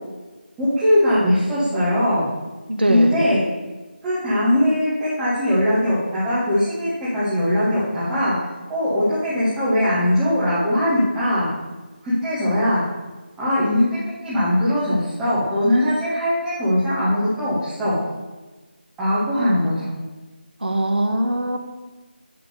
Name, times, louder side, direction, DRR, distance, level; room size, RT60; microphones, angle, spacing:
voice 1, 0.6-2.3 2.9-3.4 4.0-8.3 8.7-11.5 12.0-12.8 13.4-18.0 19.0-19.9, left 1 dB, 5° right, -12 dB, 1.3 m, -20 dB
voice 2, 2.7-3.2 20.6-21.6, right 1 dB, 65° right, 4 dB, 1.3 m, -21 dB
9.4 x 3.7 x 6.7 m, 1.2 s
figure-of-eight pair, 165°, 6 cm